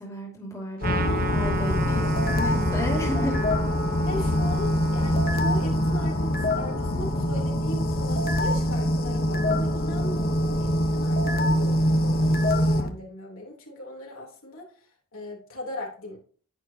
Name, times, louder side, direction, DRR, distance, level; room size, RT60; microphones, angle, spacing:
voice 1, 0.0-3.3, equal, 15° left, -2 dB, 2.5 m, -33 dB
sound 1, 0.8-12.9, left 1 dB, 45° left, 1.2 m, -24 dB
Trumpet, 0.8-7.5, right 5 dB, 40° right, 0.9 m, -37 dB
voice 2, 2.9-3.4 4.0-16.2, left 1 dB, 65° left, -1 dB, 3.6 m, -38 dB
10.5 x 9.8 x 2.9 m, 0.41 s
head